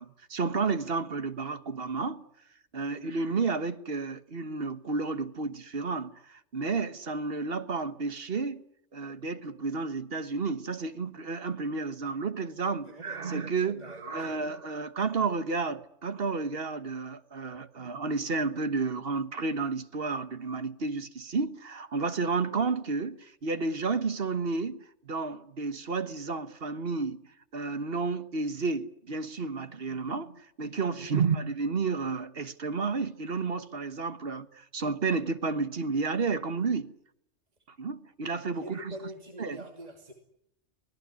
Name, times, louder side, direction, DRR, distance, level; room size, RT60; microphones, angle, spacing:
voice 1, 0.0-2.3 2.7-8.6 8.9-27.2 27.5-37.0 37.7-38.9 39.4-39.6, right 4 dB, 55° right, 1.5 m, -31 dB
voice 2, 2.8-3.2 12.8-13.2 13.6-14.5 31.0-31.2 38.5-40.1, equal, 35° right, 2.8 m, -45 dB
24.5 x 18.0 x 9.6 m
omnidirectional pair, 1.2 m